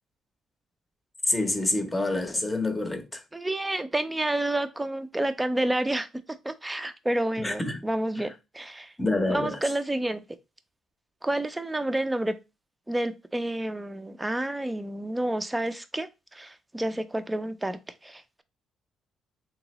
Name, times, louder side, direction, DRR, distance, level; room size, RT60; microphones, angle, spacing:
voice 1, 1.3-3.2 7.4-7.8 9.0-9.6, left 2 dB, 15° left, 0.9 m, -27 dB
voice 2, 3.3-6.1 6.4-8.9 9.3-10.2 11.2-12.4 12.9-18.4, right 1 dB, 10° right, 0.6 m, -29 dB
3.8 x 3.0 x 2.9 m
cardioid pair, 90°, 0 cm